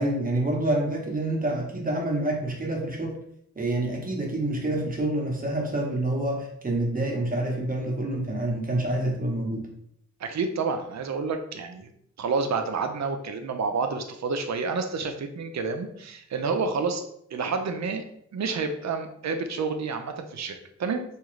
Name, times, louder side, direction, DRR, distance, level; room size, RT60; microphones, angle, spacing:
voice 1, 0.0-3.2 3.5-9.7, right 1 dB, 30° right, -1 dB, 0.8 m, -27 dB
voice 2, 10.2-11.9 12.2-17.0 17.3-18.0 18.3-21.0, right 4 dB, 65° right, 6 dB, 0.5 m, -29 dB
3.6 x 2.5 x 3.1 m, 0.71 s
wide cardioid pair, 125°, 29 cm